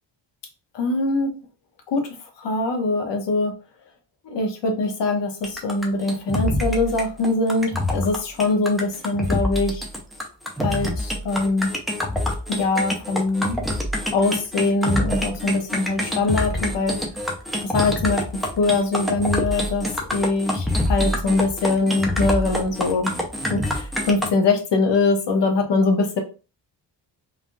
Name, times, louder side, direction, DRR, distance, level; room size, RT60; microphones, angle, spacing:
voice 1, 0.7-1.4 1.9-3.5 4.2-9.8 10.6-11.7 12.5-13.6 14.1-17.0 17.6-23.1 23.5-26.2, left 3 dB, 70° left, 4 dB, 0.9 m, -23 dB
sound 1, 5.4-24.3, left 1 dB, ahead, 0.5 m, -26 dB
3.4 x 2.4 x 2.5 m, 0.34 s
wide cardioid pair, 145°, 44 cm